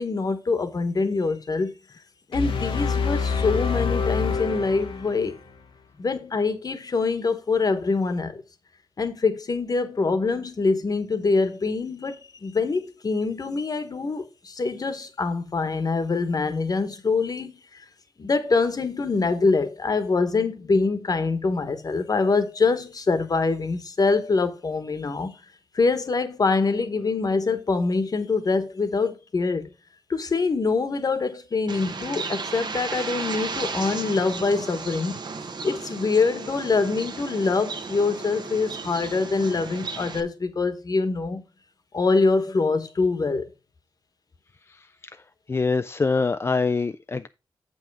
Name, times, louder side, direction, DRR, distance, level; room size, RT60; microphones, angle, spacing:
voice 1, 0.0-1.7 2.3-5.4 6.0-8.4 9.0-17.8 18.2-25.4 25.7-29.7 30.1-35.2 35.6-41.4 41.9-43.5, left 4 dB, 45° left, 1.2 m, -24 dB
sound 1, 2.3-5.5, left 5 dB, 90° left, 1.0 m, -26 dB
Bird, 31.7-40.2, right 4 dB, 55° right, 1.0 m, -34 dB
voice 2, 44.7-45.2 45.5-47.3, left 4 dB, 30° left, 0.3 m, -25 dB
7.5 x 5.5 x 4.7 m
wide cardioid pair, 95°, 9 cm